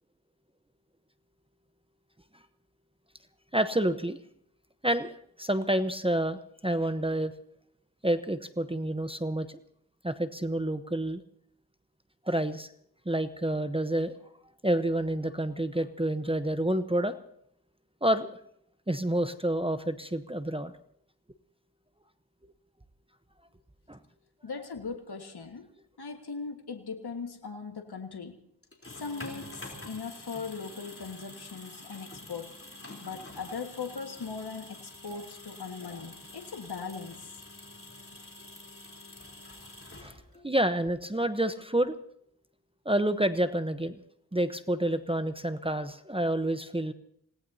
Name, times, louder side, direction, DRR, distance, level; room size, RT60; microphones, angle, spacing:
voice 1, 3.5-4.2 4.8-5.1 5.4-7.3 8.0-9.6 10.0-11.2 12.3-12.7 13.1-14.1 14.6-17.1 18.0-18.3 18.9-20.7 23.9-24.0 40.0-40.1 40.4-42.0 42.8-44.0 44.3-46.9, right 1 dB, 15° right, 10 dB, 0.9 m, -28 dB
voice 2, 24.4-25.6 26.0-28.4 28.9-32.6 33.0-37.3, left 5 dB, 75° left, 4 dB, 1.7 m, -39 dB
sound 1, 28.6-40.5, left 2 dB, 35° left, 3.7 m, -47 dB
27.0 x 18.5 x 2.8 m, 0.70 s
wide cardioid pair, 55°, 40 cm